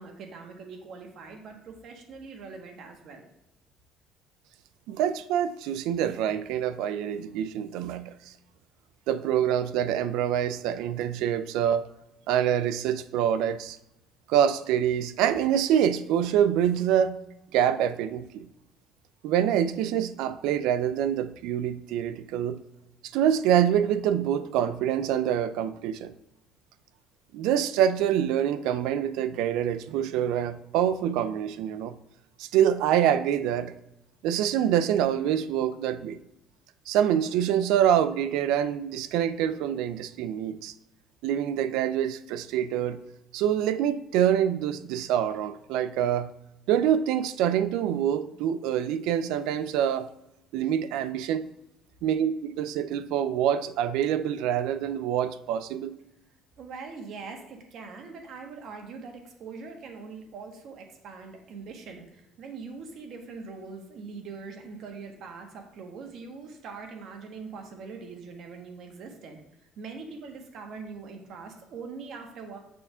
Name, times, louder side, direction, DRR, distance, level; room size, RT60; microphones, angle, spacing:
voice 1, 0.0-3.3 56.6-69.4 69.8-72.6, right 4 dB, 60° right, 1.4 m, -42 dB
voice 2, 4.9-8.3 9.1-11.9 12.3-13.8 14.3-17.2 17.5-18.5 19.2-22.6 23.0-26.1 27.3-31.9 32.4-33.7 34.2-36.2 36.9-40.7 41.2-43.0 43.3-46.3 46.7-50.1 50.5-51.5 52.0-55.9, right 10 dB, 80° right, 0.4 m, -26 dB
6.7 x 3.5 x 5.5 m
cardioid pair, 115°, 0 cm